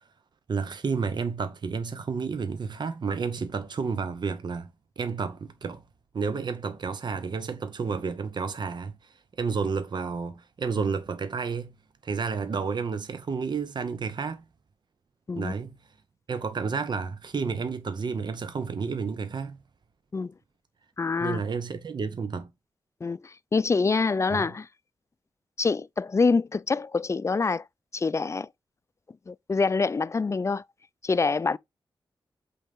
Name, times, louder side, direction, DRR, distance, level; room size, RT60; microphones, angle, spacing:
voice 1, 0.5-4.7 5.0-5.8 6.1-11.7 12.0-14.4 15.3-15.7 16.3-19.6 21.2-22.5 24.3-24.4, right 5 dB, 55° right, 0.8 m, -31 dB
voice 2, 21.0-21.4 23.0-24.7 25.6-27.7 27.9-28.5 29.3-30.6 31.0-31.6, left 4 dB, 35° left, 0.4 m, -25 dB
8.1 x 4.0 x 3.6 m
cardioid pair, 70°, 9 cm